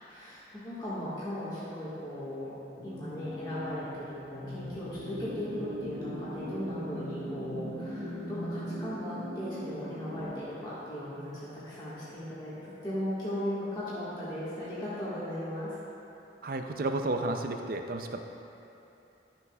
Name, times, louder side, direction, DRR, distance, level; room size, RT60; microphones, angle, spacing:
voice 1, 0.1-2.5 2.8-15.7, equal, 25° left, -11 dB, 1.6 m, -37 dB
sound 1, 2.8-10.3, equal, 80° right, 1.5 m, -40 dB
voice 2, 16.4-18.2, right 2 dB, 50° right, 5 dB, 0.4 m, -32 dB
12.5 x 6.7 x 2.3 m, 2.9 s
head